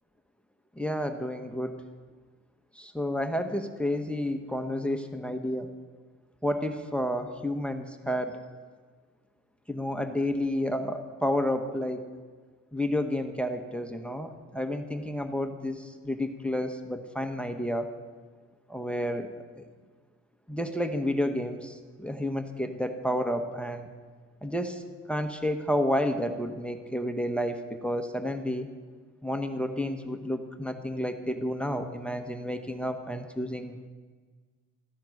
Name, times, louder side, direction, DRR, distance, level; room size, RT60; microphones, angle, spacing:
voice 1, 0.8-1.8 2.7-5.7 6.4-8.4 9.7-12.1 12.7-17.9 18.7-19.3 19.6-19.7 20.5-23.9 24.4-24.8 25.1-28.7 29.2-33.8, left 1 dB, 5° left, 6 dB, 1.0 m, -30 dB
13.5 x 10.5 x 6.5 m, 1.5 s
cardioid pair, 90°, 30 cm